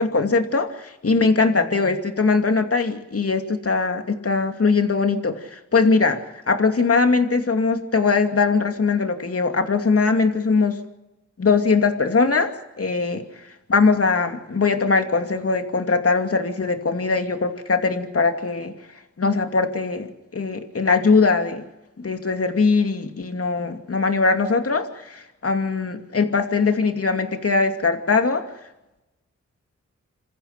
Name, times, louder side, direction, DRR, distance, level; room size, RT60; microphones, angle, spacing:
voice 1, 0.0-6.2 6.5-10.8 11.4-13.2 13.7-18.7 19.2-21.6 22.0-28.5, left 4 dB, 50° left, 6 dB, 2.6 m, -21 dB
27.5 x 15.0 x 6.7 m, 0.96 s
cardioid pair, 70°, 29 cm